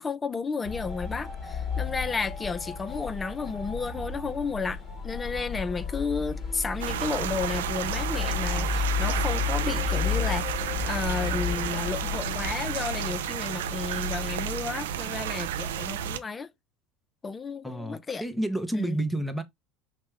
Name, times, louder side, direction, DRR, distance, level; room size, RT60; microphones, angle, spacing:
voice 1, 0.0-16.5 17.2-18.2 18.7-19.0, left 4 dB, 20° left, 0.4 m, -32 dB
sound 1, 0.6-12.5, left 7 dB, 40° left, 1.4 m, -32 dB
sound 2, 6.8-16.2, right 8 dB, 75° right, 0.4 m, -31 dB
voice 2, 17.6-19.4, right 1 dB, 5° left, 0.9 m, -30 dB
5.7 x 2.2 x 3.2 m
hypercardioid pair, 70°, 0 cm